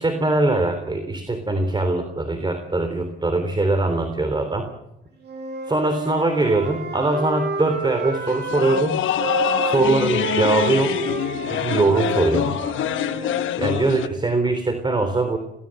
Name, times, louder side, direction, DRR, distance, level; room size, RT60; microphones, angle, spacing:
voice 1, 0.0-4.7 5.7-9.0 9.6-11.0 11.5-12.6 13.6-15.4, right 2 dB, 25° right, 8 dB, 3.5 m, -22 dB
Wind instrument woodwind instrument, 5.2-8.9 9.2-13.5, right 4 dB, 60° right, 6.9 m, -29 dB
sound 1, 8.3-14.1, left 11 dB, 80° left, 1.1 m, -25 dB
27.5 x 18.5 x 7.8 m, 0.90 s
cardioid pair, 90°, 20 cm